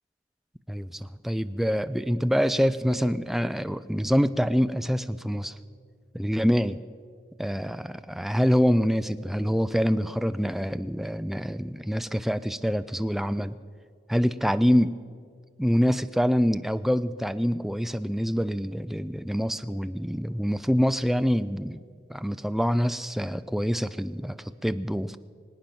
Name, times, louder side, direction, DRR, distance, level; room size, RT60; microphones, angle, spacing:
voice 1, 0.7-5.6 6.1-6.8 7.4-13.6 14.1-15.0 15.6-21.8 22.1-25.2, equal, ahead, 12 dB, 0.3 m, -25 dB
24.5 x 8.9 x 5.9 m, 2.2 s
head